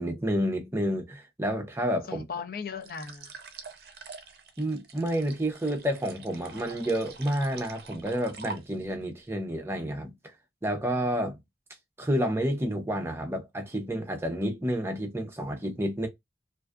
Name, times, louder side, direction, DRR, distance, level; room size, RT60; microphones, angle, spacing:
voice 1, 0.0-2.3 4.6-10.1 10.6-11.4 12.0-16.1, equal, 15° right, 0.5 m, -29 dB
voice 2, 2.1-3.3, left 5 dB, 55° left, 0.5 m, -37 dB
sound 1, 2.8-9.0, right 4 dB, 60° right, 0.5 m, -45 dB
2.5 x 2.3 x 2.2 m
head